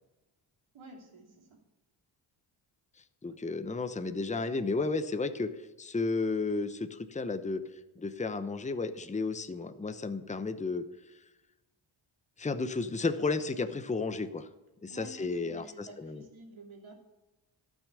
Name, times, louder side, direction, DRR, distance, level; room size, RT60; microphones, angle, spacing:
voice 1, 0.7-1.6 14.9-16.9, right 2 dB, 70° right, 0 dB, 3.0 m, -50 dB
voice 2, 3.2-5.5 5.8-7.6 8.0-10.8 12.4-14.5 14.8-16.2, left 3 dB, 15° left, 10 dB, 0.8 m, -33 dB
11.5 x 6.4 x 6.8 m, 1.0 s
cardioid pair, 60°, 50 cm